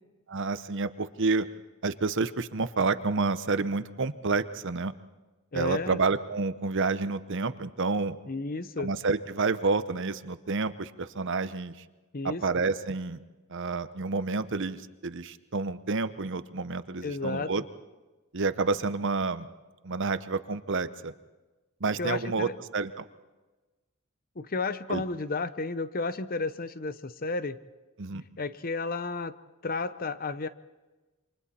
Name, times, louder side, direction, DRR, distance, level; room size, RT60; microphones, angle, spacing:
voice 1, 0.3-1.5 1.8-4.9 5.5-8.2 8.8-11.7 12.2-13.2 13.5-17.6 18.3-19.5 19.8-21.1 21.8-23.0 24.9-25.0 28.0-28.2, right 4 dB, 60° right, 13 dB, 0.9 m, -29 dB
voice 2, 5.5-6.0 8.3-8.9 12.1-12.4 17.0-17.5 22.0-22.5 24.4-27.6 28.4-29.3 29.6-30.5, left 3 dB, 40° left, 13 dB, 0.8 m, -32 dB
28.5 x 24.5 x 4.3 m, 1.2 s
head